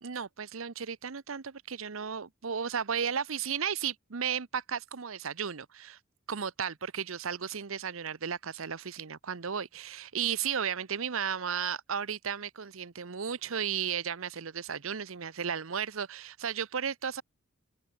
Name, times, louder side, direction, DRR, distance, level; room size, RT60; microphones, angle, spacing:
voice 1, 0.0-6.0 6.3-17.2, right 7 dB, 75° right, 0.8 m, -34 dB
open air
head